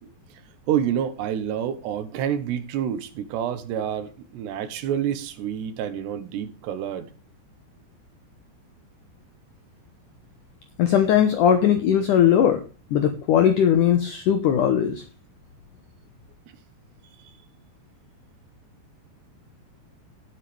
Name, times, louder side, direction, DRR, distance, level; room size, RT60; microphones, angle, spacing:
voice 1, 0.7-7.1, right 9 dB, 80° right, 11 dB, 3.3 m, -28 dB
voice 2, 10.8-12.6 12.9-15.0, left 9 dB, 70° left, 8 dB, 2.1 m, -19 dB
17.5 x 8.3 x 3.3 m, 0.33 s
omnidirectional pair, 4.8 m